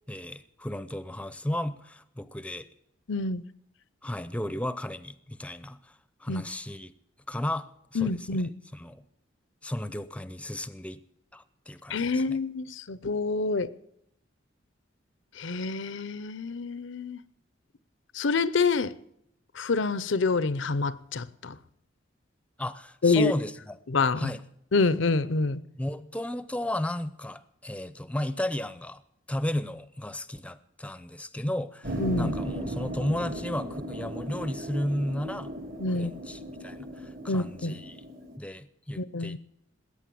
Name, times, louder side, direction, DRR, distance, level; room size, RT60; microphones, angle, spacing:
voice 1, 0.1-2.7 4.0-6.9 7.3-7.7 7.9-8.4 8.7-9.0 9.6-11.0 11.3-12.4 22.6-23.8 24.2-24.4 25.7-29.0 29.3-35.5 35.9-38.0 38.4-39.4, left 1 dB, 5° left, 0.6 m, -34 dB
voice 2, 3.1-3.4 6.3-6.4 7.9-8.5 11.9-13.7 15.4-17.2 18.1-18.9 19.6-21.5 23.0-23.3 23.9-24.3 24.7-25.6 32.0-32.3 35.8-36.1 37.3-37.7 39.0-39.4, left 3 dB, 70° left, 0.7 m, -27 dB
sound 1, 31.8-38.4, equal, 45° right, 1.5 m, -36 dB
20.5 x 9.0 x 7.6 m
head